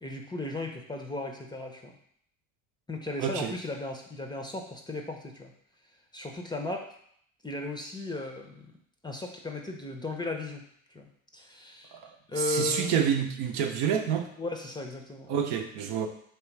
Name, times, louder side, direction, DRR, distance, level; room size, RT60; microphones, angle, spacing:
voice 1, 0.0-1.9 2.9-5.5 6.1-6.9 7.4-8.7 9.0-10.6 10.9-11.1 11.3-12.0 12.3-13.0 14.4-15.3, left 2 dB, 10° left, 3 dB, 0.5 m, -36 dB
voice 2, 3.2-3.5 11.9-14.3 15.3-16.1, right 8 dB, 70° right, 5 dB, 0.7 m, -28 dB
3.3 x 3.0 x 4.5 m, 0.66 s
hypercardioid pair, 80°, 42 cm